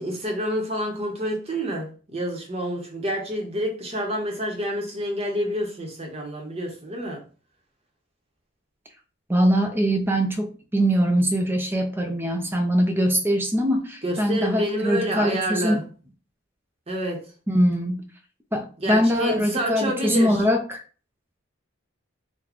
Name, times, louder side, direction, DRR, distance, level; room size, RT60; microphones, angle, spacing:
voice 1, 0.0-7.2 14.0-15.8 16.9-17.2 18.8-20.4, equal, 30° right, 0.8 m, -28 dB
voice 2, 9.3-15.8 17.5-18.0 18.5-20.8, equal, 10° right, 0.4 m, -22 dB
3.9 x 2.1 x 3.0 m
head